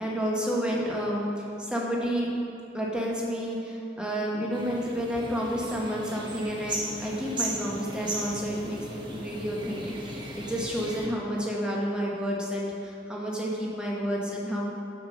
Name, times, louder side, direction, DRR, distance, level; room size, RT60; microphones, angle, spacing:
voice 1, 0.0-2.3 2.7-14.7, equal, 5° right, -3 dB, 1.2 m, -30 dB
sound 1, 4.5-11.1, right 1 dB, 25° right, 0.9 m, -37 dB
7.2 x 6.7 x 5.5 m, 2.6 s
head